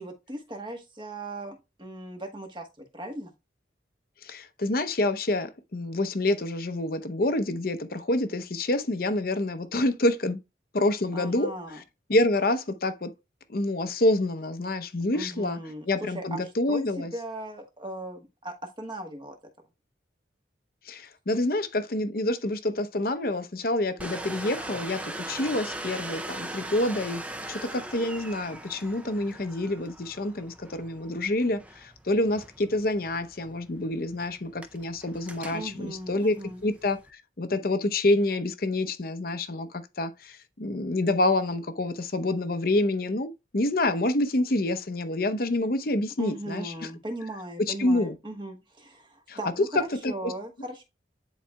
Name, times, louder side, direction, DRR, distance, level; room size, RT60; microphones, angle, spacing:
voice 1, 0.0-3.3 11.1-11.8 15.1-16.4 16.7-19.4 35.5-36.6 46.2-50.8, right 1 dB, 25° right, 1.2 m, -38 dB
voice 2, 4.2-10.4 10.7-11.5 12.1-13.1 13.5-15.6 15.9-17.1 20.8-27.2 27.5-46.7 47.7-48.1 49.3-49.4 50.0-50.3, left 2 dB, 50° left, 0.7 m, -27 dB
Domestic sounds home sounds, 24.0-37.1, right 1 dB, 5° right, 0.4 m, -41 dB
10.0 x 4.1 x 2.2 m
head